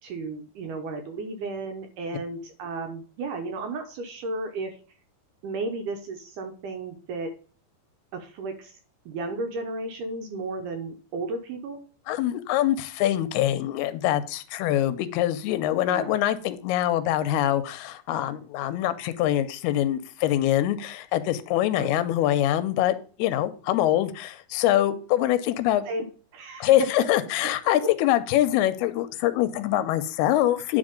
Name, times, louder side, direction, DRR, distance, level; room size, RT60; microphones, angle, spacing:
voice 1, 0.0-4.8 5.4-7.3 8.1-8.8 9.1-11.8 15.9-16.2 21.8-22.0 25.9-26.1 26.3-26.9 27.4-27.5, right 3 dB, 70° right, 5 dB, 2.0 m, -33 dB
voice 2, 12.1-25.9 26.6-30.8, left 13 dB, 85° left, 13 dB, 2.6 m, -24 dB
9.8 x 3.9 x 5.0 m, 0.41 s
omnidirectional pair, 4.5 m